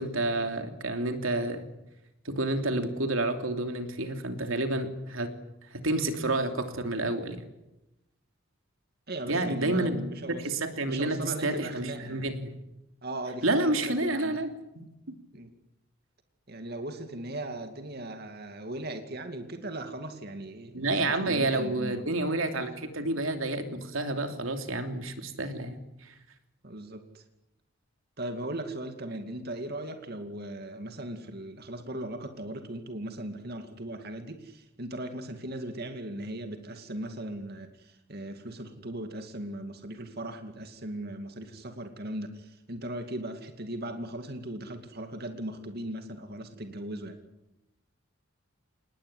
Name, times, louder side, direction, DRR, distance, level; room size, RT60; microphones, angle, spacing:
voice 1, 0.0-1.7 2.2-5.3 5.7-7.4 9.3-10.0 10.4-12.6 13.4-14.5 14.7-15.2 20.7-26.1, right 2 dB, 85° right, 6 dB, 3.1 m, -29 dB
voice 2, 9.1-10.5 10.9-12.3 13.0-14.5 15.3-15.5 16.5-22.1 26.6-27.2 28.2-47.2, right 1 dB, 50° right, 6 dB, 2.4 m, -38 dB
27.0 x 20.5 x 10.0 m, 0.92 s
head